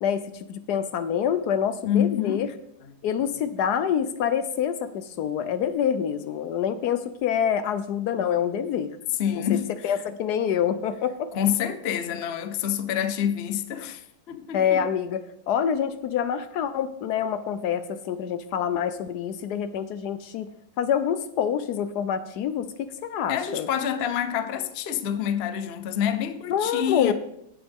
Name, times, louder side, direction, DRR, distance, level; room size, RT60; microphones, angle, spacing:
voice 1, 0.0-2.5 3.0-8.9 9.4-11.3 14.5-20.5 20.8-23.7 26.5-27.1, left 8 dB, 70° left, 1.1 m, -26 dB
voice 2, 1.8-2.5 9.2-10.0 11.3-14.8 23.3-27.1, left 9 dB, 55° left, 0.7 m, -27 dB
16.5 x 7.2 x 3.6 m
omnidirectional pair, 2.0 m